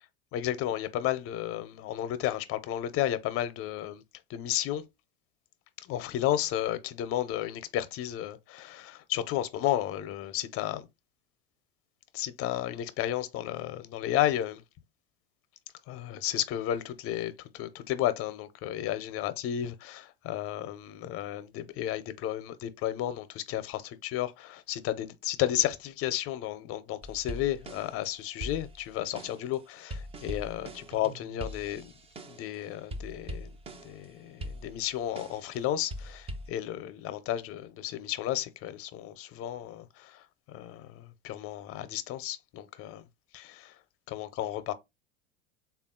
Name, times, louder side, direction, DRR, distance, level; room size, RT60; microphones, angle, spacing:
voice 1, 0.3-4.0 4.3-4.8 5.8-10.9 12.1-14.6 15.9-31.9 32.3-33.5 33.8-43.0 43.3-43.7 44.1-44.7, left 12 dB, 45° left, 0.6 m, -33 dB
sound 1, 27.0-28.1 28.4-32.6 32.9-34.1 34.4-35.6 35.9-36.5, equal, 20° right, 0.5 m, -42 dB
3.4 x 2.4 x 3.7 m
hypercardioid pair, 90°, 33 cm